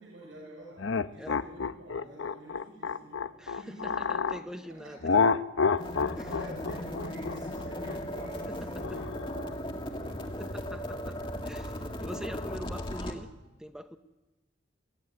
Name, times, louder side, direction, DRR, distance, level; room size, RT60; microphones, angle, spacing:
voice 1, 0.0-5.1 6.3-10.4, right 2 dB, 85° right, -3 dB, 6.9 m, -48 dB
sound 1, 0.8-4.4 5.0-9.5, left 5 dB, 80° left, 0.8 m, -29 dB
voice 2, 3.4-5.1 6.1-6.4 6.8-6.9 8.5-9.0 10.4-13.3 13.6-14.0, equal, 5° right, 8 dB, 0.8 m, -44 dB
sound 2, 5.8-13.1, left 1 dB, 25° left, 2.0 m, -37 dB
22.0 x 16.0 x 9.7 m, 1.1 s
head